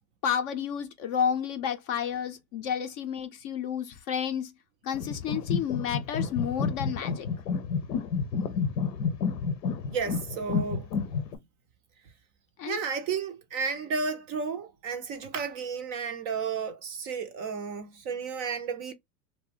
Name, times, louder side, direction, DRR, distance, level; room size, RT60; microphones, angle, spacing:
voice 1, 0.2-4.5 4.8-7.3 12.6-12.8, left 8 dB, 30° left, 0.4 m, -31 dB
sound 1, 4.9-11.4, left 5 dB, 90° left, 0.7 m, -30 dB
voice 2, 9.9-10.9 12.7-18.9, right 5 dB, 35° right, 0.4 m, -32 dB
2.5 x 2.1 x 3.4 m
hypercardioid pair, 110°, 49 cm